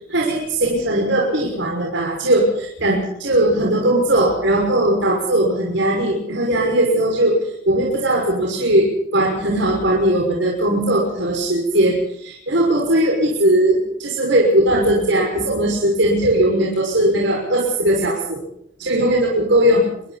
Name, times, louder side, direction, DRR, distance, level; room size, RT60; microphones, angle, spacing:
voice 1, 0.1-18.4 18.8-19.8, right 1 dB, 65° right, -2 dB, 6.2 m, -18 dB
27.0 x 23.0 x 4.2 m, 0.73 s
head